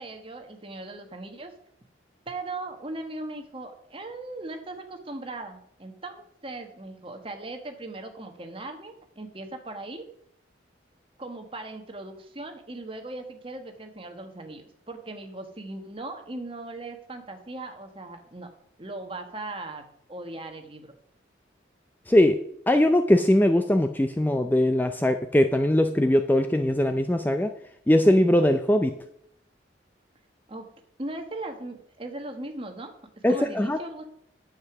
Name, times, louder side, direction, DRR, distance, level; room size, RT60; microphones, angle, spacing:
voice 1, 0.0-1.5 2.3-10.0 11.2-18.5 18.8-19.8 20.1-20.9 30.5-30.7 31.0-32.9 33.3-34.0, right 2 dB, 30° right, 5 dB, 1.3 m, -38 dB
voice 2, 22.1-22.4 22.7-27.5 27.9-28.9 33.2-33.8, left 1 dB, 10° left, 7 dB, 0.4 m, -21 dB
9.4 x 7.7 x 5.9 m, 0.68 s
head